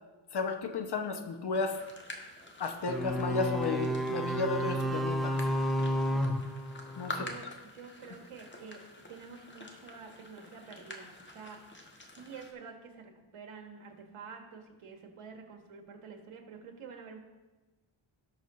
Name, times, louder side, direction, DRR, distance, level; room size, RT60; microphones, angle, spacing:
voice 1, 0.3-1.8 2.6-5.4 7.0-7.3, left 4 dB, 50° left, 6 dB, 1.0 m, -33 dB
sound 1, 1.5-12.5, left 2 dB, 20° left, 1.3 m, -47 dB
sound 2, 2.9-7.3, equal, ahead, 0.5 m, -31 dB
voice 2, 7.0-8.8 9.1-11.6 12.1-17.2, right 5 dB, 85° right, 3 dB, 1.7 m, -48 dB
18.0 x 6.3 x 3.2 m, 1.1 s
wide cardioid pair, 130°, 50 cm